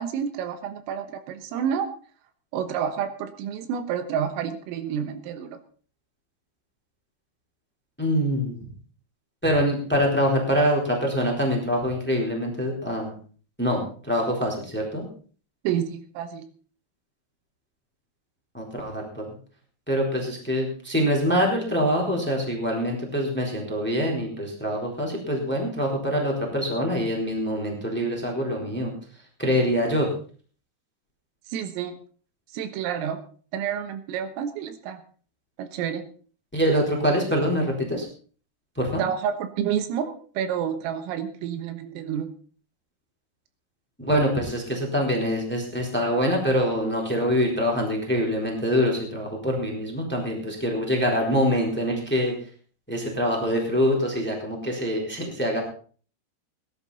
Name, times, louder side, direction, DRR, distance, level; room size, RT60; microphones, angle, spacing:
voice 1, 0.0-1.9 2.5-5.6 15.7-16.4 31.5-32.0 32.5-33.2 33.5-35.0 35.6-36.0 39.0-42.3, right 8 dB, 85° right, 9 dB, 3.9 m, -29 dB
voice 2, 8.0-8.6 9.4-13.1 13.6-13.8 14.1-15.0 18.5-19.2 19.9-28.9 29.4-30.1 36.5-38.0 38.7-39.0 44.0-52.3 52.9-55.6, equal, 5° left, 0 dB, 2.9 m, -24 dB
18.5 x 11.5 x 4.2 m, 0.42 s
omnidirectional pair, 5.9 m